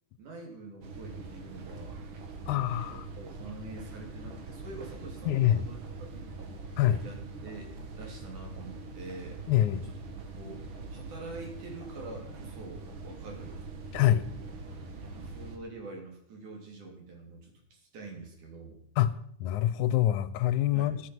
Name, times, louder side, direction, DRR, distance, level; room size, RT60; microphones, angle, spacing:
voice 1, 0.2-2.0 2.9-6.3 7.0-7.7 8.0-9.4 10.4-13.6 14.4-14.5 15.1-18.8 20.7-21.0, right 3 dB, 80° right, 1 dB, 4.7 m, -45 dB
sound 1, 0.8-15.6, right 3 dB, 50° right, 2.0 m, -43 dB
voice 2, 2.5-3.1 5.3-5.6 6.8-7.0 9.5-9.8 13.9-14.2 19.0-21.0, left 12 dB, 85° left, 14 dB, 2.2 m, -25 dB
11.5 x 11.0 x 5.9 m, 0.66 s
omnidirectional pair, 3.5 m